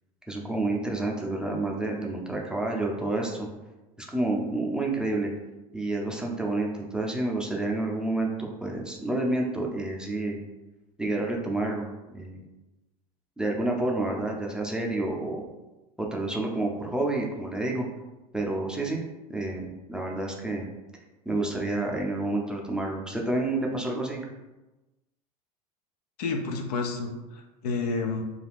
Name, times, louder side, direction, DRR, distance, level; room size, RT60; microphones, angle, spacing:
voice 1, 0.3-3.5 4.0-5.3 5.7-10.4 11.0-11.9 12.1-12.4 13.4-15.4 16.0-17.9 18.3-19.0 19.3-20.7 21.3-24.2, right 2 dB, 5° right, -1 dB, 0.5 m, -29 dB
voice 2, 26.2-28.2, left 4 dB, 80° left, 3 dB, 0.5 m, -30 dB
2.5 x 2.3 x 3.4 m, 1.1 s
hypercardioid pair, 85°, 20 cm